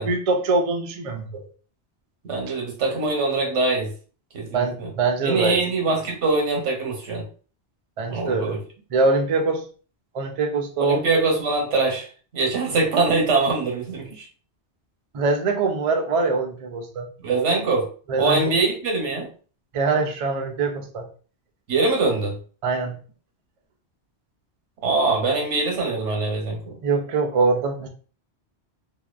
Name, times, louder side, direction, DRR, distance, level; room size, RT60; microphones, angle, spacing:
voice 1, 0.0-1.4 4.5-5.6 8.0-8.6 8.9-9.6 10.1-11.0 15.1-17.5 18.1-18.5 19.7-21.1 22.6-23.0 26.8-27.9, right 3 dB, 60° right, 3 dB, 0.3 m, -23 dB
voice 2, 2.3-3.9 4.3-4.9 5.2-7.2 8.1-8.6 10.8-12.1 12.3-14.3 17.2-17.9 18.2-19.3 21.7-22.3 24.8-26.7, right 3 dB, 85° right, 0 dB, 1.1 m, -23 dB
2.7 x 2.2 x 2.3 m, 0.40 s
omnidirectional pair, 1.2 m